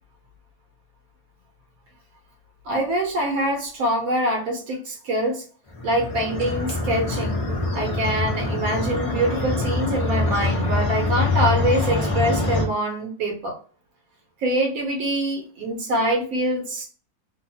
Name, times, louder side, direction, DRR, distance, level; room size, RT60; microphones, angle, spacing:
voice 1, 2.6-5.4 5.8-7.4 7.7-13.5 14.4-16.8, right 1 dB, 70° right, 2 dB, 1.0 m, -24 dB
sound 1, 5.7-12.7, left 2 dB, 65° left, 0.3 m, -24 dB
2.7 x 2.2 x 2.6 m, 0.40 s
omnidirectional pair, 1.7 m